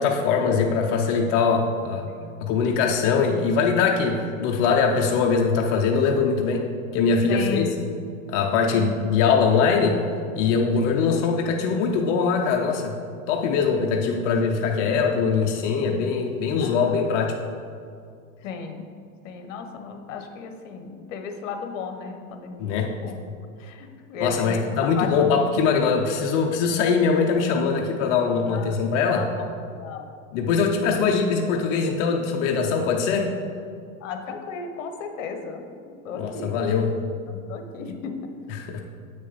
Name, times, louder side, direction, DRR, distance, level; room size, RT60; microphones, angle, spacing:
voice 1, 0.0-2.1 2.4-6.6 6.9-7.7 8.3-10.0 10.4-12.9 13.3-17.4 22.6-22.9 24.2-29.3 30.3-33.3 36.2-36.9 38.5-38.8, left 5 dB, 30° left, 1 dB, 0.5 m, -22 dB
voice 2, 7.3-8.0 8.7-8.8 10.8-10.9 16.6-17.0 18.4-19.0 19.2-23.2 23.6-24.7 25.0-25.6 28.5-28.7 29.1-29.5 29.8-30.0 31.0-31.1 34.0-36.6 37.3-38.3, left 5 dB, 60° left, 6 dB, 1.0 m, -34 dB
7.7 x 6.3 x 4.0 m, 2.3 s
supercardioid pair, 145°, 42 cm